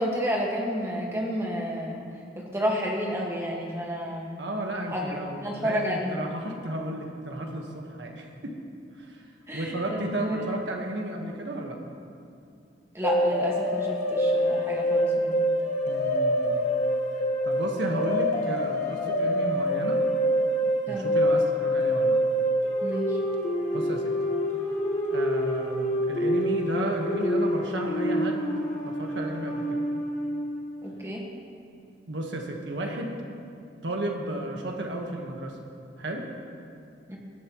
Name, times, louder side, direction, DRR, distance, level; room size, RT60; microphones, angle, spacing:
voice 1, 0.0-2.0 2.4-4.3 4.9-5.1 5.4-6.1 9.5-10.4 12.9-15.4 20.9-21.1 22.8-23.2 30.8-31.3 37.1-37.2, equal, 15° right, -2 dB, 1.8 m, -30 dB
voice 2, 4.4-8.6 9.0-9.3 9.5-11.8 15.9-16.6 17.1-20.0 20.9-22.2 23.7-24.1 25.1-28.5 28.8-29.8 32.1-33.1 33.8-35.6 36.0-36.3, right 1 dB, 75° right, 1 dB, 1.5 m, -33 dB
sound 1, 13.0-30.4, equal, 45° left, 1.5 m, -26 dB
19.0 x 11.5 x 3.1 m, 2.4 s
head